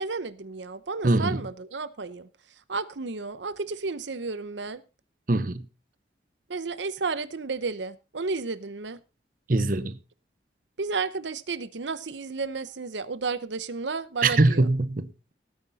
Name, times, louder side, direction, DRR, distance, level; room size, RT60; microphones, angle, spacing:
voice 1, 0.0-2.3 2.7-4.8 6.5-9.0 10.8-14.7, right 4 dB, 85° right, 0.8 m, -32 dB
voice 2, 1.0-1.4 5.3-5.6 9.5-9.9 14.2-15.1, right 2 dB, 50° right, 0.8 m, -22 dB
17.0 x 9.7 x 4.1 m
head